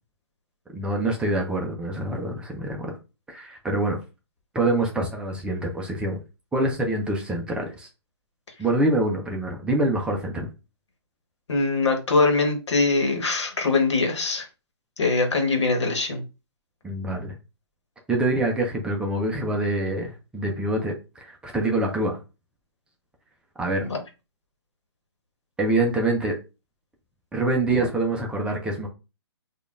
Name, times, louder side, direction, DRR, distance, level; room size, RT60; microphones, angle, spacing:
voice 1, 0.7-3.0 3.3-4.0 4.5-6.2 6.5-7.9 8.6-10.5 16.8-17.4 18.1-22.2 23.6-23.9 25.6-26.3 27.3-28.9, right 2 dB, 5° right, 0.6 m, -25 dB
voice 2, 11.5-14.5 15.0-16.2 23.8-24.0, left 3 dB, 80° left, 1.2 m, -22 dB
4.9 x 2.5 x 2.4 m
hypercardioid pair, 135°, 15 cm